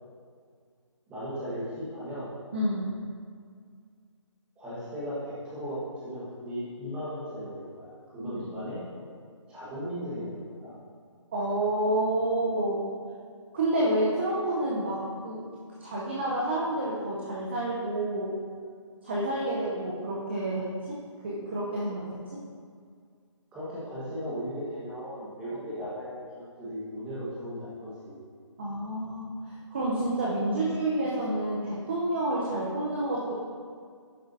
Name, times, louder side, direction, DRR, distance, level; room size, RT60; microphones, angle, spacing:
voice 1, 1.1-2.3 4.6-8.8 9.5-10.7 23.5-28.2, equal, 5° right, -10 dB, 1.3 m, -37 dB
voice 2, 2.5-3.0 8.2-8.3 11.3-12.9 13.5-15.5 15.8-18.4 19.0-21.0 21.2-22.4 28.6-33.3, right 1 dB, 20° right, -5 dB, 0.6 m, -29 dB
11.0 x 4.7 x 2.6 m, 2.1 s
hypercardioid pair, 170°, 16 cm